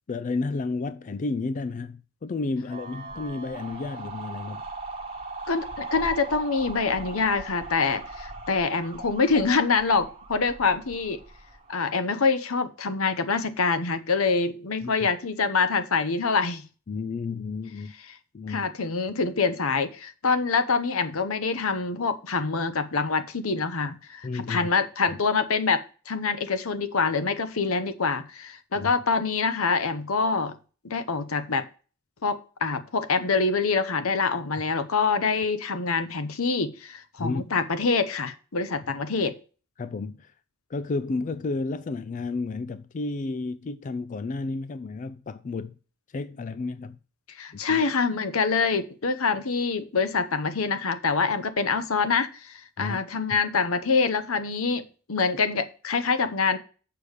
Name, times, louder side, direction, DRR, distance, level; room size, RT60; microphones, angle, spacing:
voice 1, 0.1-4.6 14.8-15.1 16.9-17.9 18.3-18.7 24.2-24.7 28.7-28.9 37.2-37.4 39.8-40.3 40.7-45.7 46.1-47.0 47.7-47.8 52.8-53.0, left 3 dB, 35° left, 0.3 m, -31 dB
sound 1, 2.7-11.7, right 3 dB, 25° right, 1.3 m, -40 dB
voice 2, 5.5-11.2 11.7-16.6 18.5-30.5 30.8-31.6 32.2-39.4 47.4-54.8 55.1-56.6, left 4 dB, 80° left, 0.9 m, -25 dB
6.9 x 5.0 x 6.4 m
head